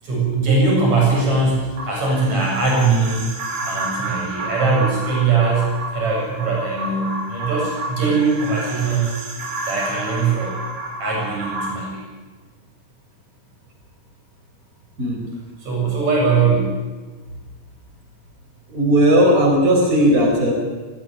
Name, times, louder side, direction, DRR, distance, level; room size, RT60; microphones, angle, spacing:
voice 1, 0.0-3.3 3.6-9.1 9.6-10.5 11.0-12.0 15.6-16.7, right 4 dB, 70° right, -2 dB, 8.4 m, -20 dB
sound 1, 1.8-11.7, right 2 dB, 90° right, 4.3 m, -30 dB
voice 2, 18.7-20.5, equal, 30° right, 0 dB, 4.9 m, -16 dB
19.5 x 14.5 x 10.0 m, 1.3 s
omnidirectional pair, 3.3 m